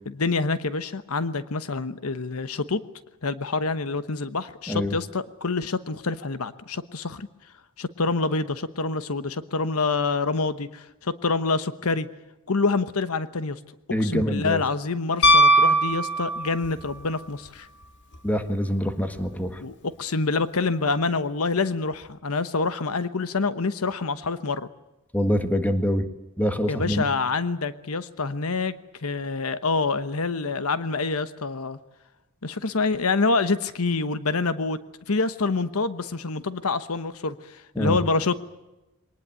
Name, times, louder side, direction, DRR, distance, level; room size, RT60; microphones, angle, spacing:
voice 1, 0.1-2.8 3.2-7.3 7.8-12.1 12.5-13.6 14.0-17.7 19.6-24.7 26.7-28.7 29.0-31.8 32.4-34.8 35.1-38.4, left 3 dB, 75° left, 13 dB, 1.1 m, -26 dB
voice 2, 13.9-14.6 18.2-19.6 25.1-26.1 26.4-27.0 37.7-38.0, equal, 5° left, 8 dB, 1.7 m, -25 dB
Piano, 15.2-16.8 19.2-19.3, right 1 dB, 55° left, 2.2 m, -18 dB
23.5 x 19.0 x 8.9 m, 0.98 s
head